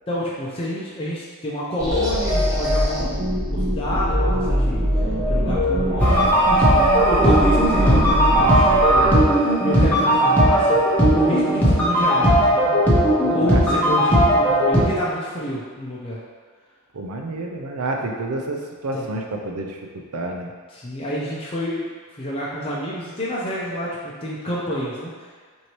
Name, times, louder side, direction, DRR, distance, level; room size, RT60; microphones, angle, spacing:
voice 1, 0.1-4.8 5.3-12.7 13.2-16.2 18.0-18.1 18.9-19.1 20.7-21.8 22.1-25.1, equal, 25° left, -7 dB, 0.6 m, -28 dB
sound 1, 1.8-9.1, equal, 15° right, 1.2 m, -21 dB
sound 2, 6.0-14.8, right 1 dB, 5° left, 1.0 m, -17 dB
voice 2, 16.9-20.5, right 2 dB, 80° right, 2 dB, 0.6 m, -29 dB
6.2 x 2.7 x 3.0 m, 1.5 s
head